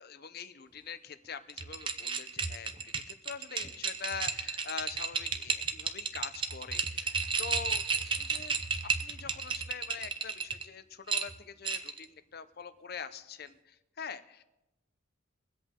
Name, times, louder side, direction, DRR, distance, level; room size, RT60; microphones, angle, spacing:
voice 1, 0.0-8.6 9.0-14.4, left 6 dB, 50° left, 12 dB, 0.6 m, -44 dB
sound 1, 1.5-10.6 11.1-12.0, right 5 dB, 25° right, 0.6 m, -33 dB
23.5 x 8.2 x 3.7 m, 0.98 s
head